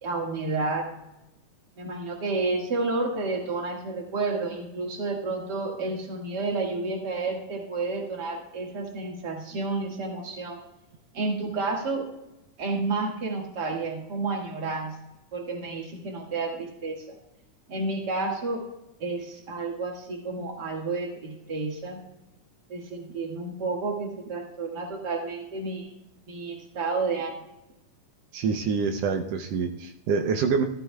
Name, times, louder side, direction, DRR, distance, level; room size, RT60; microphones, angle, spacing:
voice 1, 0.0-0.9 1.8-10.6 11.1-12.1 12.6-14.9 15.3-17.2 17.7-18.7 19.0-22.0 22.7-25.9 26.3-27.4, right 3 dB, 40° right, 0 dB, 1.8 m, -30 dB
voice 2, 28.3-30.6, right 5 dB, 90° right, 4 dB, 1.4 m, -26 dB
14.5 x 14.0 x 2.3 m, 0.93 s
omnidirectional pair, 3.8 m